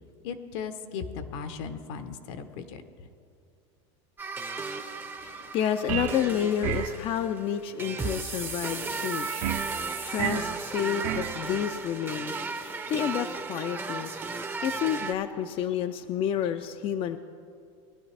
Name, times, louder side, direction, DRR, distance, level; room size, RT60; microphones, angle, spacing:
voice 1, 0.2-2.8, left 6 dB, 70° left, 9 dB, 0.9 m, -37 dB
sound 1, 4.2-15.1, right 4 dB, 15° right, 0.6 m, -35 dB
voice 2, 5.2-14.3 14.6-17.2, left 9 dB, 35° left, 8 dB, 0.4 m, -30 dB
sound 2, 5.9-6.3 6.6-7.0 9.4-9.7 10.2-10.5 11.0-11.4, right 11 dB, 60° right, 0.7 m, -30 dB
19.0 x 10.5 x 3.3 m, 2.4 s
supercardioid pair, 125°, 15 cm